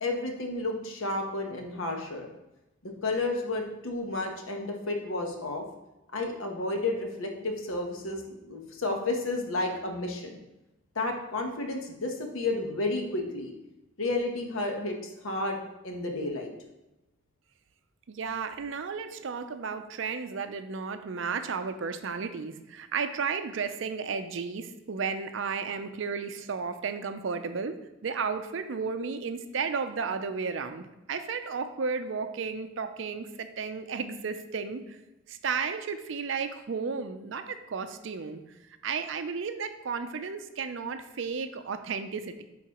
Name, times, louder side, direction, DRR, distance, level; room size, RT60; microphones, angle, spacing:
voice 1, 0.0-2.3 2.8-5.6 6.1-10.4 10.9-13.5 14.0-15.0 15.2-16.5, left 2 dB, 85° left, 3 dB, 1.0 m, -31 dB
voice 2, 18.1-27.7 28.0-35.0 35.3-38.4 38.8-42.4, right 5 dB, 65° right, 9 dB, 0.5 m, -33 dB
9.3 x 3.9 x 2.9 m, 0.97 s
head